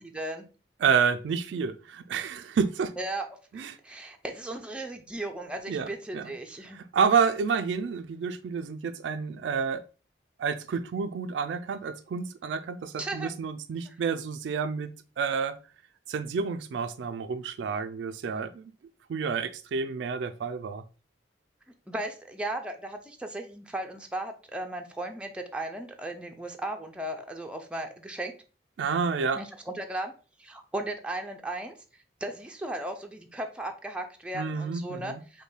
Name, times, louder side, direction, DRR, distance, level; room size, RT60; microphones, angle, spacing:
voice 1, 0.1-0.5 3.0-3.3 3.5-6.8 13.0-13.3 13.9-14.0 21.9-28.3 29.3-30.1 30.4-31.7 32.2-35.4, right 1 dB, 5° right, 0.4 m, -36 dB
voice 2, 0.8-2.9 3.5-3.8 5.7-6.3 6.7-9.8 10.4-15.6 16.1-18.7 19.1-20.8 28.8-29.4 34.3-35.2, right 6 dB, 85° right, 0.3 m, -29 dB
5.2 x 2.2 x 3.2 m
head